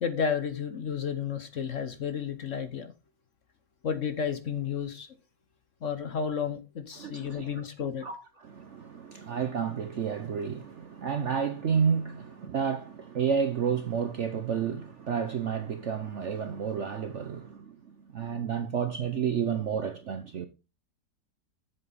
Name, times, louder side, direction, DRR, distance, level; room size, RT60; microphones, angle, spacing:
voice 1, 0.0-2.9 3.8-5.1 5.8-8.1, left 7 dB, 50° left, 1.1 m, -32 dB
voice 2, 7.0-7.6 8.0-20.5, right 7 dB, 60° right, 0.8 m, -31 dB
7.8 x 7.7 x 4.0 m
omnidirectional pair, 1.9 m